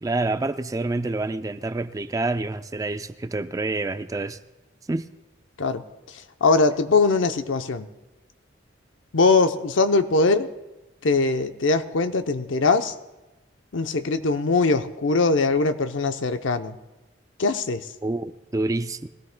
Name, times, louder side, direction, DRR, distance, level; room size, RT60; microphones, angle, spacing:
voice 1, 0.0-4.4 4.9-5.0 18.0-19.1, right 2 dB, 20° right, 0.4 m, -27 dB
voice 2, 5.6-7.9 9.1-10.5 11.0-12.9 13.7-16.8 17.4-17.9, left 3 dB, 85° left, 0.7 m, -21 dB
21.5 x 16.0 x 2.2 m
head